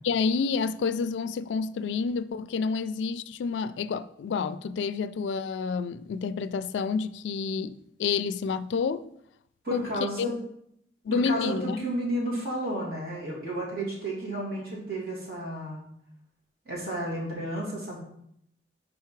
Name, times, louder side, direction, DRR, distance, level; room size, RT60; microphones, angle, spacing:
voice 1, 0.0-7.7 8.0-9.1 9.7-9.9 10.2-10.3 11.0-11.8, left 5 dB, 90° left, 0.3 m, -29 dB
voice 2, 9.6-10.3 11.1-15.8 16.7-18.0, right 1 dB, 55° right, 2.6 m, -32 dB
5.2 x 4.7 x 4.5 m
head